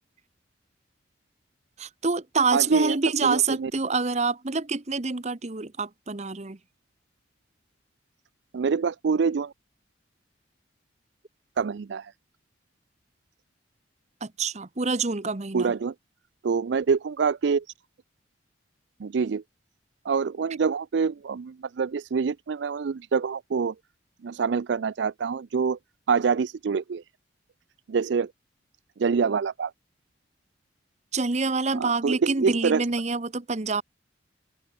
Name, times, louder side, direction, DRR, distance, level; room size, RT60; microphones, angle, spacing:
voice 1, 1.8-6.6 14.2-15.7 31.1-33.8, right 4 dB, 35° right, 0.9 m, -26 dB
voice 2, 2.5-3.0 3.2-3.7 8.5-9.5 11.6-12.1 15.5-15.9 16.4-17.6 19.0-19.4 20.1-23.7 24.2-25.8 26.1-27.0 27.9-28.3 29.0-29.7 31.7-32.8, right 5 dB, 65° right, 0.4 m, -25 dB
open air
head